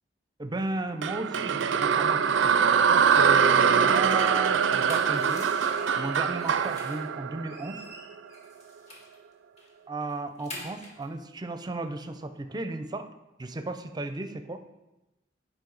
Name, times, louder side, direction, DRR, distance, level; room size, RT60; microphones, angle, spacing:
voice 1, 0.4-7.8 9.9-13.1 13.4-14.6, right 2 dB, 25° right, 8 dB, 0.5 m, -35 dB
sound 1, 1.0-8.2, right 7 dB, 80° right, 0.4 m, -23 dB
sound 2, 4.8-7.1 7.4-9.2 9.6-9.7 10.0-11.1, left 1 dB, 40° left, 1.8 m, -45 dB
10.5 x 5.1 x 3.9 m, 1.0 s
head